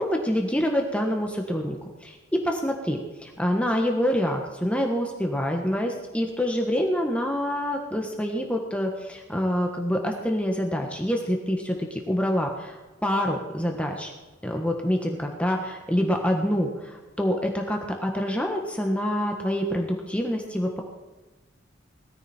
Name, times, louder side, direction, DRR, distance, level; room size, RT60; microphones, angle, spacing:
voice 1, 0.0-1.8 2.0-14.1 14.4-20.8, equal, 5° left, 2 dB, 1.4 m, -26 dB
20.0 x 14.5 x 4.4 m, 1.2 s
head